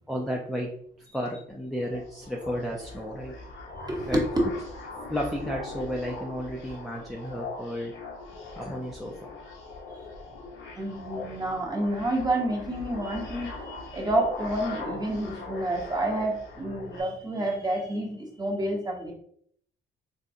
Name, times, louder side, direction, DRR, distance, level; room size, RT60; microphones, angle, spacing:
voice 1, 0.1-0.7 1.1-3.3 4.1-4.2 5.1-7.9 8.6-9.1, equal, ahead, -2 dB, 0.5 m, -32 dB
sound 1, 1.7-17.0, left 2 dB, 75° left, 0.8 m, -40 dB
voice 2, 3.8-4.4 9.9-10.0 10.7-19.1, right 1 dB, 20° right, -1 dB, 1.0 m, -29 dB
3.7 x 2.2 x 2.7 m, 0.64 s
cardioid pair, 90°, 20 cm